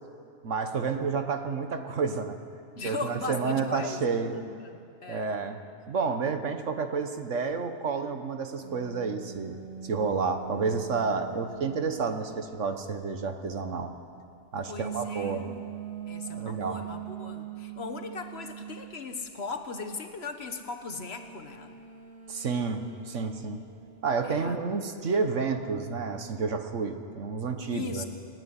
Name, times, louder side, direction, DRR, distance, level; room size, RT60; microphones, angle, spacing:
voice 1, 0.4-2.4 2.8-4.3 5.1-5.6 5.9-13.9 14.5-15.5 16.3-16.8 22.3-23.6 24.0-28.0, right 5 dB, 80° right, 7 dB, 1.6 m, -30 dB
voice 2, 2.7-4.0 4.3-5.3 14.7-15.6 16.1-21.7 24.2-24.6 27.7-28.0, left 4 dB, 55° left, 7 dB, 1.6 m, -38 dB
sound 1, 8.6-12.4 14.8-19.1 21.0-24.8, right 11 dB, 60° right, 2.4 m, -43 dB
27.5 x 9.9 x 9.9 m, 2.5 s
omnidirectional pair, 1.3 m